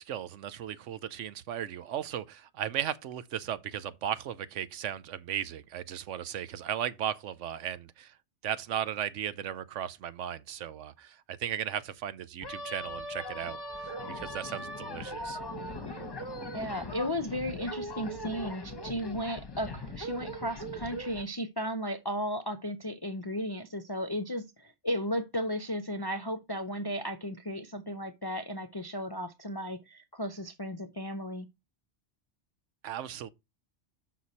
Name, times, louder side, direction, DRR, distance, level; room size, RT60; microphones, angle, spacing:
voice 1, 0.0-8.1 8.4-15.4 32.8-33.3, right 10 dB, 85° right, 1.0 m, -36 dB
sound 1, 12.4-21.2, equal, 20° left, 0.9 m, -40 dB
voice 2, 16.5-31.5, equal, 40° left, 0.3 m, -35 dB
6.5 x 5.9 x 4.1 m
omnidirectional pair, 1.2 m